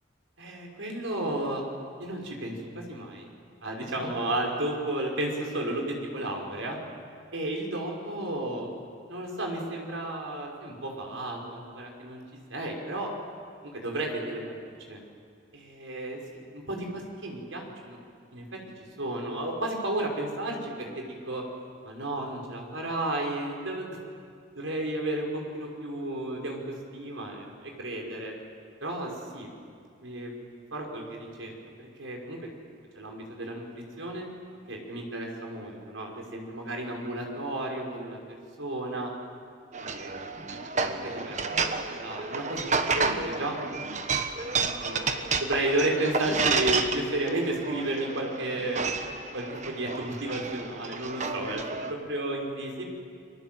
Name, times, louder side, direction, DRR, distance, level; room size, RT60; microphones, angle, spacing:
voice 1, 0.4-1.6 2.0-3.3 3.6-6.8 7.3-8.8 9.1-12.2 12.5-13.1 13.7-15.0 15.5-18.0 18.3-18.5 18.8-21.4 21.8-24.0 24.6-28.4 28.8-29.5 30.0-30.3 30.7-31.5 31.8-32.4 32.9-33.7 34.0-34.3 34.7-38.2 38.6-39.1 39.7-40.1 40.8-43.6 44.5-48.9 49.3-52.8, right 1 dB, 80° right, 0 dB, 5.6 m, -33 dB
sound 1, 39.7-51.9, right 4 dB, 35° right, 1.3 m, -31 dB
30.0 x 23.0 x 7.8 m, 2.2 s
head